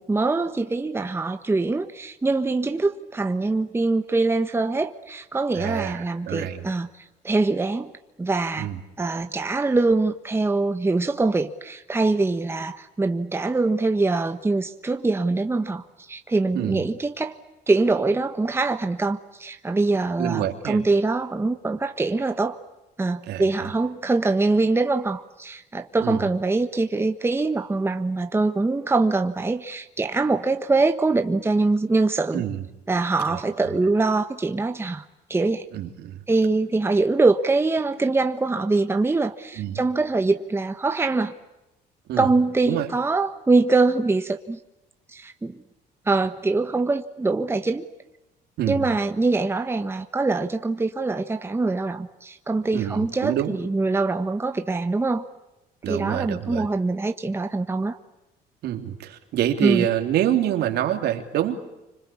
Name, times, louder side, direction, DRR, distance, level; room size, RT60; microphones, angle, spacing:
voice 1, 0.0-6.9 7.2-7.9 8.2-8.7 9.0-17.3 17.7-22.6 23.0-32.4 32.9-35.0 35.3-35.7 36.3-41.3 42.2-44.6 45.1-45.6 46.1-47.8 48.7-55.3 55.9-58.0 59.6-59.8, right 3 dB, 15° right, 1.3 m, -23 dB
voice 2, 5.5-6.6 8.6-8.8 16.5-16.8 20.2-20.8 23.3-23.5 26.0-26.2 32.3-32.6 33.3-33.4 33.7-33.8 35.7-36.2 39.5-39.8 42.1-42.3 42.7-42.9 48.6-48.9 52.7-53.6 55.8-56.7 58.6-61.6, right 11 dB, 75° right, 3.2 m, -26 dB
27.0 x 25.5 x 8.6 m
cardioid pair, 110°, 17 cm